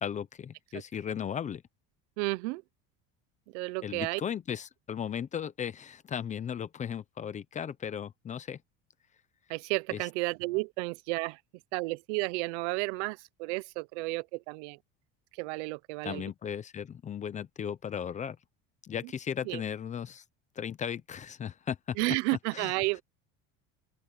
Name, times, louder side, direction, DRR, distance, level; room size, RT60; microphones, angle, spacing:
voice 1, 0.0-1.6 3.8-8.6 9.9-10.0 16.0-18.4 18.8-20.2 20.6-22.0 22.5-22.7, left 8 dB, 20° left, 0.7 m, -36 dB
voice 2, 2.2-2.6 3.5-4.2 9.5-11.4 11.7-14.8 15.3-16.2 19.0-19.1 19.4-19.6 22.0-23.0, right 24 dB, 90° right, 0.9 m, -32 dB
open air
cardioid pair, 160°, 33 cm